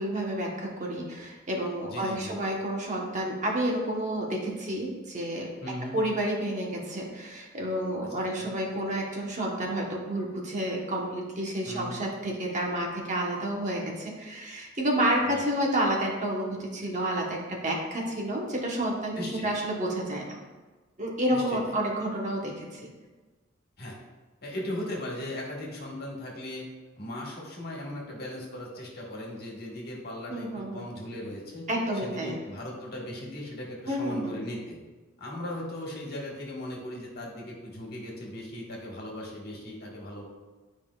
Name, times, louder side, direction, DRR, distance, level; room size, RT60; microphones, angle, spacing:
voice 1, 0.0-5.5 5.9-20.4 21.0-22.9 30.3-30.8 31.7-32.4 33.9-34.4, right 1 dB, 40° right, -1 dB, 1.2 m, -30 dB
voice 2, 1.8-2.4 5.6-6.0 8.1-8.3 11.6-12.0 15.2-15.4 19.1-19.5 21.3-21.8 23.8-24.0 24.4-26.7 27.0-31.7 32.0-34.8 35.2-40.2, left 1 dB, 50° left, -2 dB, 1.6 m, -38 dB
10.5 x 5.1 x 2.4 m, 1.3 s
head